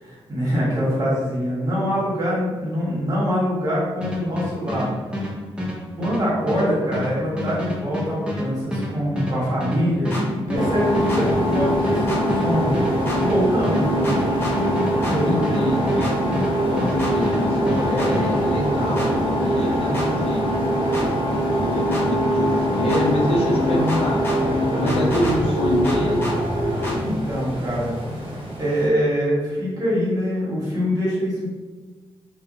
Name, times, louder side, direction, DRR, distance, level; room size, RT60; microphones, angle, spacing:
voice 1, 0.0-4.9 5.9-12.8 13.3-13.8 15.1-15.5 26.9-28.0 28.6-31.5, equal, 35° right, -6 dB, 1.2 m, -24 dB
sound 1, 4.0-17.0 17.2-18.3, left 1 dB, 10° right, 0.8 m, -28 dB
sound 2, 10.1-10.2 11.1-11.2 12.1-12.2 13.1-13.2 14.0-14.6 15.0-15.2 16.0-16.1 17.0-17.1 18.0-18.1 19.0-19.1 19.9-20.1 20.9-21.1 21.9-22.1 22.9-23.0 23.9-24.4 24.9-25.4 25.8-26.4 26.8-27.0, equal, 20° left, 0.8 m, -31 dB
sound 3, 10.5-28.9, equal, 55° right, 0.8 m, -23 dB
voice 2, 13.6-14.6 15.2-16.1 16.6-20.5 21.4-24.3 24.8-26.3, left 1 dB, 70° left, -2 dB, 0.6 m, -26 dB
2.4 x 2.0 x 2.6 m, 1.3 s
cardioid pair, 55°, 10 cm